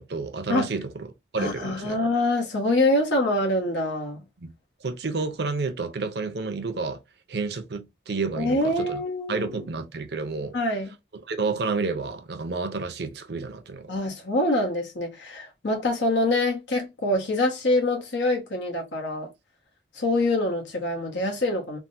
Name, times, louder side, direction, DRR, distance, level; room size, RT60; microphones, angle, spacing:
voice 1, 0.0-2.0 4.4-4.5 4.8-7.0 7.3-9.0 9.3-10.6 11.3-13.9, right 4 dB, 70° right, 0.6 m, -30 dB
voice 2, 1.4-4.2 8.4-9.5 10.5-10.9 13.9-19.3 19.9-21.8, left 1 dB, 90° left, 1.2 m, -25 dB
3.4 x 2.2 x 2.6 m
head